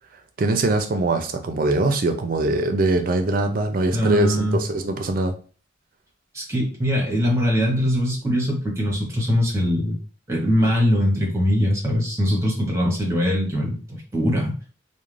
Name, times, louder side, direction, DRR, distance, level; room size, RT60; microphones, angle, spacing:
voice 1, 0.4-5.3, right 2 dB, 45° right, 6 dB, 0.4 m, -22 dB
voice 2, 3.9-4.6 6.3-10.0 10.3-14.6, equal, 15° right, -2 dB, 0.8 m, -22 dB
2.4 x 2.1 x 3.1 m, 0.40 s
head